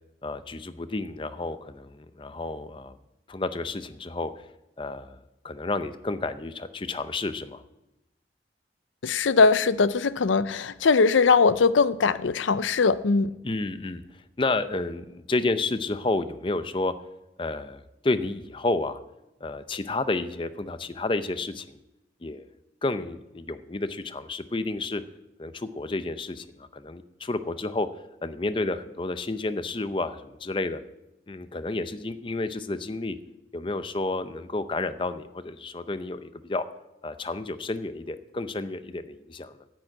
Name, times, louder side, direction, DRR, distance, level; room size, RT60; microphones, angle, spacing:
voice 1, 0.2-3.0 3.3-4.5 4.8-5.2 5.4-7.6 13.4-14.0 14.4-16.9 17.4-19.0 19.4-21.8 22.2-22.5 22.8-25.0 25.4-27.9 28.2-30.8 31.3-33.2 33.5-36.7 37.0-39.6, left 2 dB, 25° left, 12 dB, 0.5 m, -30 dB
voice 2, 9.0-13.3, left 4 dB, 90° left, 16 dB, 0.5 m, -21 dB
10.5 x 9.1 x 8.6 m, 0.94 s
head